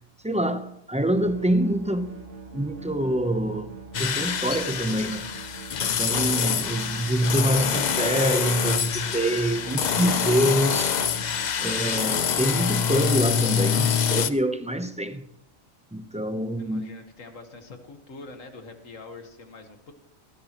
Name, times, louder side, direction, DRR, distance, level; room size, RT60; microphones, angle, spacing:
voice 1, 0.2-2.2 2.5-3.7 4.0-5.3 5.8-11.0 11.6-15.3 15.9-16.8, right 1 dB, 5° right, 0.6 m, -25 dB
sound 1, 1.2-12.7, right 4 dB, 60° right, 2.2 m, -43 dB
sound 2, 3.9-14.3, left 7 dB, 50° left, 0.5 m, -26 dB
voice 2, 16.6-19.9, left 3 dB, 75° left, 1.9 m, -44 dB
18.5 x 15.0 x 3.0 m
omnidirectional pair, 1.4 m